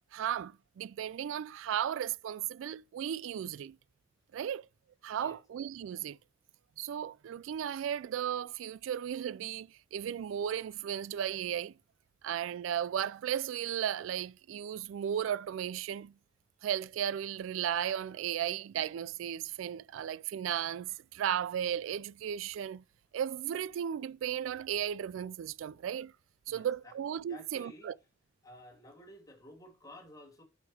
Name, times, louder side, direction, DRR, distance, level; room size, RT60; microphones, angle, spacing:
voice 1, 0.1-3.8 4.3-4.6 5.0-6.2 6.8-11.7 12.2-16.1 16.6-22.8 23.1-26.1 26.5-27.9, right 9 dB, 75° right, 0.3 m, -35 dB
voice 2, 27.3-27.9 28.4-30.4, left 1 dB, 20° left, 2.6 m, -52 dB
6.6 x 5.7 x 4.8 m
head